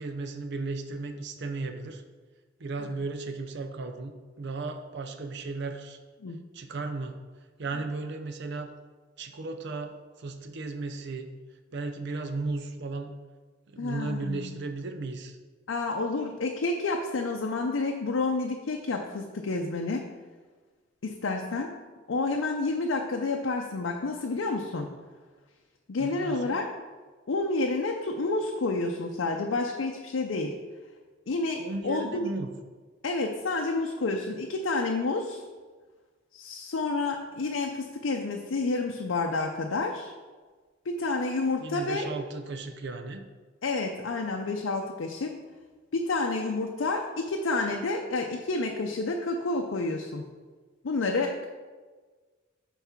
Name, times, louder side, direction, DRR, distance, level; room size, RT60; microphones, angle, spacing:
voice 1, 0.0-2.0 2.6-6.0 6.5-7.2 7.6-8.7 9.2-11.3 11.7-13.1 13.7-15.4 26.0-26.6 31.6-32.5 41.6-43.2, right 3 dB, 60° right, 7 dB, 0.5 m, -35 dB
voice 2, 13.8-14.5 15.7-20.1 21.0-21.7 22.1-24.9 25.9-26.6 27.3-30.6 31.3-32.3 33.0-35.4 36.3-40.1 40.9-42.1 43.6-45.4 45.9-50.3 50.8-51.5, left 3 dB, 80° left, 2 dB, 0.5 m, -29 dB
5.8 x 4.1 x 5.7 m, 1.4 s
head